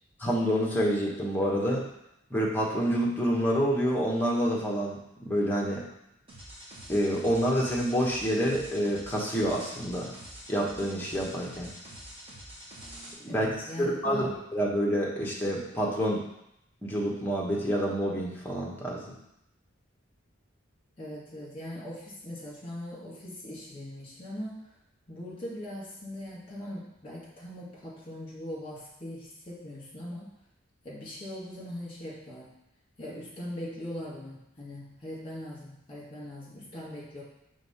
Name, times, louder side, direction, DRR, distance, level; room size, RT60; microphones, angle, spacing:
voice 1, 0.2-1.8 2.3-5.8 6.9-10.1 10.5-11.7 13.2-13.5 13.8-14.3 14.5-16.2 16.8-19.1, equal, 10° left, -3 dB, 1.1 m, -27 dB
sound 1, 6.3-13.1, right 1 dB, 25° right, 1.5 m, -46 dB
voice 2, 13.3-14.4 21.0-24.7 25.1-30.3 30.8-32.5 33.0-37.2, left 1 dB, 25° left, -5 dB, 2.1 m, -40 dB
5.1 x 3.6 x 5.6 m, 0.80 s
head